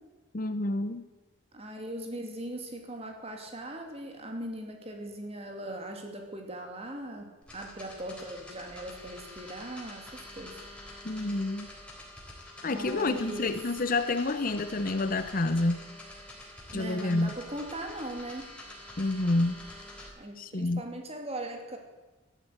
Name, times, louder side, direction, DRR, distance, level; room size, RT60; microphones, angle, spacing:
voice 1, 0.3-1.0 11.0-11.7 12.6-15.8 16.7-17.3 19.0-19.6 20.4-20.8, left 2 dB, 45° left, 11 dB, 0.8 m, -28 dB
voice 2, 1.5-10.6 12.6-13.5 16.7-18.5 20.2-21.8, right 1 dB, 30° right, 3 dB, 2.8 m, -39 dB
sound 1, 7.4-20.1, left 1 dB, 5° left, 3.6 m, -47 dB
14.0 x 12.0 x 8.1 m, 1.2 s
head